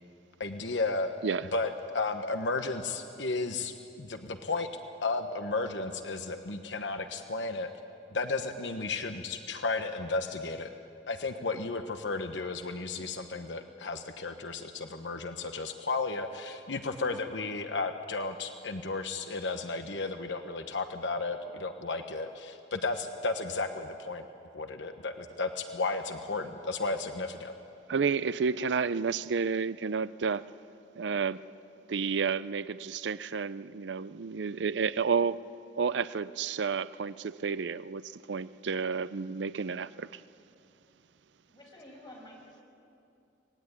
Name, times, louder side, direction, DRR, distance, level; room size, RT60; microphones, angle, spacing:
voice 1, 0.4-1.1 1.5-4.7 5.0-7.7 8.1-10.7 11.1-24.2 24.5-27.5, left 3 dB, 75° left, 7 dB, 1.1 m, -33 dB
voice 2, 27.9-30.4 31.0-31.4 31.9-35.4 35.8-40.2, right 5 dB, 70° right, 16 dB, 0.5 m, -31 dB
voice 3, 41.5-42.6, left 1 dB, 25° left, -1 dB, 6.0 m, -50 dB
25.0 x 19.5 x 9.7 m, 2.7 s
head